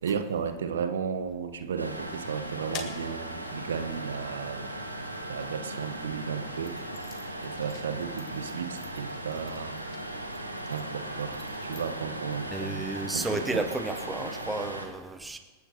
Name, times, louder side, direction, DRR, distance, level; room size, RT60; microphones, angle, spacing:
voice 1, 0.0-4.7 5.3-6.8 7.4-9.8 10.7-13.6, right 6 dB, 65° right, 9 dB, 1.3 m, -34 dB
sound 1, 1.8-14.9, right 1 dB, 85° right, 2.0 m, -38 dB
sound 2, 2.7-5.6 6.2-12.5, left 7 dB, 40° left, 2.3 m, -49 dB
voice 2, 12.5-15.4, right 2 dB, 10° right, 8 dB, 1.0 m, -32 dB
26.5 x 14.5 x 3.1 m, 1.3 s
figure-of-eight pair, 90°, 0 cm